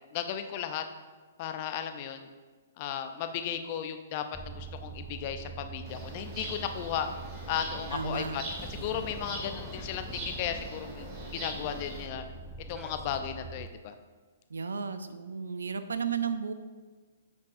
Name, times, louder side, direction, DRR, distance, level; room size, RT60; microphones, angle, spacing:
voice 1, 0.1-0.8 1.4-2.3 2.8-7.1 7.5-8.4 8.8-12.2 12.7-13.9, left 9 dB, 45° left, 8 dB, 0.6 m, -35 dB
sound 1, 4.3-13.7, right 2 dB, ahead, 0.4 m, -44 dB
sound 2, 5.9-12.1, right 2 dB, 30° right, 2.1 m, -42 dB
voice 2, 7.9-8.4 8.7-9.0 14.5-16.5, right 6 dB, 85° right, 11 dB, 0.5 m, -34 dB
8.9 x 5.9 x 2.6 m, 1.4 s
hypercardioid pair, 130°, 0 cm